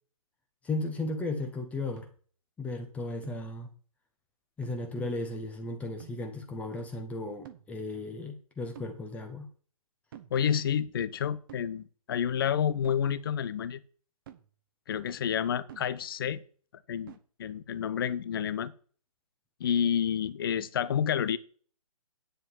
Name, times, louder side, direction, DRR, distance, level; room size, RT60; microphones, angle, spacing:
voice 1, 0.6-2.1 2.6-3.7 4.6-9.5, left 2 dB, 5° left, 1.2 m, -35 dB
sound 1, 2.0-2.2 3.2-3.6 4.6-5.0 6.0-6.3 7.5-7.8 8.8-9.1 10.1-10.5 11.5-11.8 12.8-13.1 14.3-14.5 15.7-16.0 17.1-17.2, right 9 dB, 35° right, 1.3 m, -50 dB
voice 2, 10.3-13.8 14.9-16.4 16.9-18.7 19.6-21.4, left 8 dB, 40° left, 0.9 m, -29 dB
10.5 x 9.3 x 4.7 m
figure-of-eight pair, 135°, 19 cm